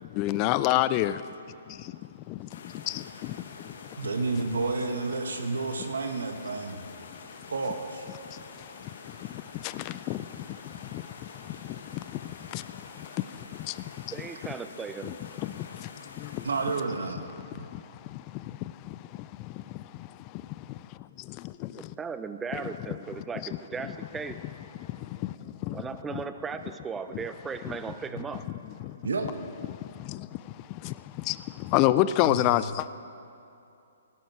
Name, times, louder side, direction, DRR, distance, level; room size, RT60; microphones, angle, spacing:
voice 1, 0.1-1.2 1.7-2.0 2.3-3.8 8.3-8.7 9.0-14.1 15.0-15.9 16.2-16.4 17.4-21.9 22.9-23.0 24.8-26.2 28.8-29.0 29.7-32.9, left 15 dB, 30° left, 0.3 m, -31 dB
sound 1, 2.5-16.8, left 5 dB, 65° left, 1.5 m, -47 dB
voice 2, 4.0-6.8 7.5-8.1 16.4-17.2 17.5-17.7 28.1-28.2 29.0-29.3 32.2-32.5, right 3 dB, 80° right, 1.4 m, -30 dB
voice 3, 14.1-15.1 21.8-24.4 25.7-28.4, right 5 dB, 10° right, 0.6 m, -37 dB
17.0 x 12.0 x 4.8 m
hypercardioid pair, 135°, 0 cm